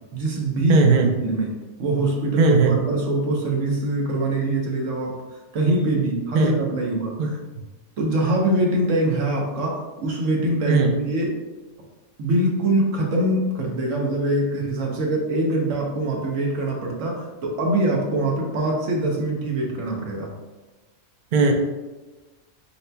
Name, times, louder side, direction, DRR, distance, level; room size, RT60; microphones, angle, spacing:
voice 1, 0.1-0.8 1.2-1.5 1.8-5.2 5.5-7.4 8.0-11.3 12.2-20.3, right 1 dB, 80° right, -1 dB, 1.2 m, -23 dB
voice 2, 0.7-1.1 2.4-2.8 6.3-6.6 7.2-7.3 10.7-10.9 21.3-21.5, right 4 dB, 55° right, 3 dB, 0.5 m, -18 dB
4.2 x 4.0 x 2.2 m, 1.2 s
omnidirectional pair, 1.3 m